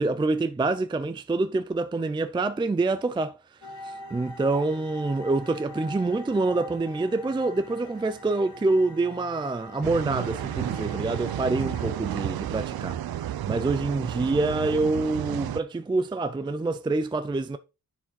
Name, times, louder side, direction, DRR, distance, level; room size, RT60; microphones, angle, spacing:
voice 1, 0.0-3.4 3.8-13.0 13.5-17.6, right 3 dB, 15° right, 0.4 m, -26 dB
sound 1, 3.6-11.9, left 1 dB, 55° left, 5.1 m, -43 dB
sound 2, 9.8-15.6, right 12 dB, 85° right, 0.6 m, -32 dB
10.0 x 4.8 x 4.2 m
wide cardioid pair, 175°, 35 cm